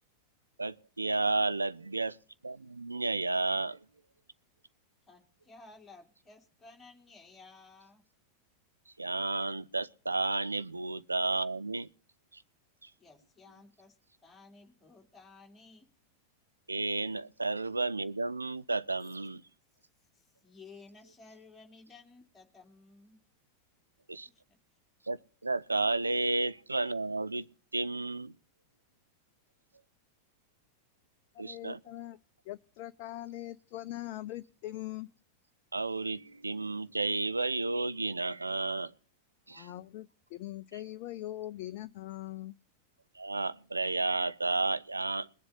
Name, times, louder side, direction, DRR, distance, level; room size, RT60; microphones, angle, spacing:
voice 1, 0.6-2.2 2.4-3.8 9.0-11.9 12.3-12.4 12.8-12.9 16.7-19.4 24.1-24.3 25.1-25.2 25.4-27.5 27.7-28.3 31.4-31.8 35.7-38.9 39.5-39.7 43.2-45.3, right 3 dB, 80° right, 0.5 m, -32 dB
voice 2, 5.1-8.0 13.0-14.0 14.2-15.9 20.1-23.2 24.2-24.6, left 3 dB, 10° left, 2.8 m, -55 dB
voice 3, 31.3-32.2 32.5-35.1 39.5-42.5, left 15 dB, 45° left, 0.5 m, -42 dB
21.0 x 7.7 x 4.1 m
figure-of-eight pair, 90°, 0 cm